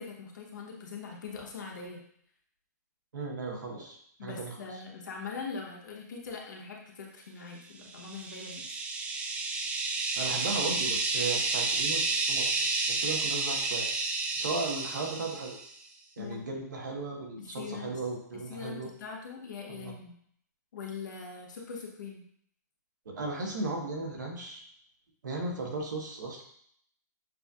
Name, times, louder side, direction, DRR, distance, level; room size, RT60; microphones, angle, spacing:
voice 1, 0.0-2.0 4.2-8.7 16.2-16.4 17.4-18.0 18.3-20.1 20.7-22.2, left 5 dB, 80° left, -1 dB, 1.2 m, -42 dB
voice 2, 3.1-4.5 10.2-13.9 14.4-15.6 16.2-18.9 19.7-19.9 23.0-24.6 25.2-26.4, right 3 dB, 80° right, 0 dB, 1.4 m, -36 dB
sound 1, 7.9-15.7, right 3 dB, 15° right, 0.3 m, -31 dB
6.6 x 2.7 x 2.4 m, 0.66 s
hypercardioid pair, 140°, 10 cm